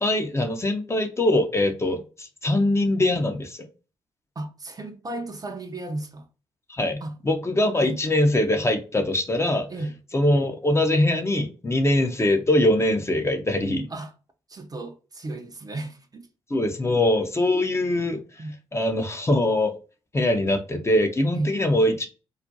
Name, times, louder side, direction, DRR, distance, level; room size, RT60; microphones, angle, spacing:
voice 1, 0.0-3.6 6.7-9.7 10.1-13.9 16.5-18.2 18.7-19.7 20.1-22.1, left 1 dB, 20° left, 0.6 m, -22 dB
voice 2, 4.4-6.3 7.0-7.2 7.8-8.0 9.7-10.0 13.9-14.1 14.5-16.3 18.4-18.6 21.3-21.6, right 2 dB, 30° right, 0.5 m, -33 dB
2.4 x 2.1 x 2.6 m
hypercardioid pair, 40°, 13 cm